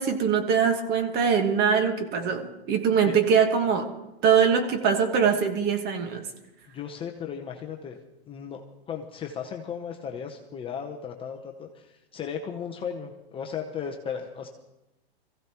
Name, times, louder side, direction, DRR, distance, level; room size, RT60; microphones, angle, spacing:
voice 1, 0.0-3.9 4.2-6.2, right 6 dB, 30° right, 6 dB, 1.5 m, -22 dB
voice 2, 6.7-8.0 8.3-14.5, left 7 dB, 15° left, 2 dB, 0.8 m, -36 dB
23.0 x 15.0 x 3.0 m, 0.95 s
hypercardioid pair, 135°, 32 cm